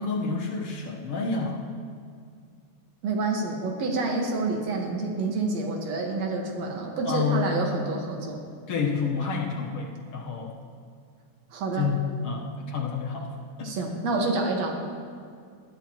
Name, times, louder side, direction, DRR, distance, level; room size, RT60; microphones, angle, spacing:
voice 1, 0.0-1.6 7.1-7.5 8.7-10.6 11.7-13.3 13.6-13.7, left 5 dB, 60° left, -1 dB, 1.9 m, -29 dB
voice 2, 3.0-8.4 11.5-11.9 13.6-14.8, right 3 dB, 65° right, 1 dB, 2.7 m, -28 dB
19.5 x 13.0 x 3.0 m, 2.2 s
omnidirectional pair, 3.3 m